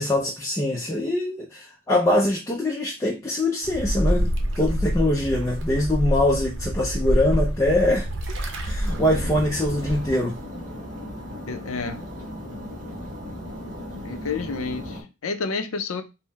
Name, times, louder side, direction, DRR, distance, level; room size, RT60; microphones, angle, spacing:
voice 1, 0.0-4.3 4.6-8.1 8.6-10.3, left 1 dB, 15° left, 0.4 m, -23 dB
sound 1, 3.6-10.1, equal, 55° right, 0.7 m, -27 dB
sound 2, 8.9-15.0, equal, 35° right, 1.1 m, -36 dB
voice 2, 11.5-12.0 14.0-16.0, left 4 dB, 80° left, 0.5 m, -30 dB
3.8 x 2.0 x 4.0 m
head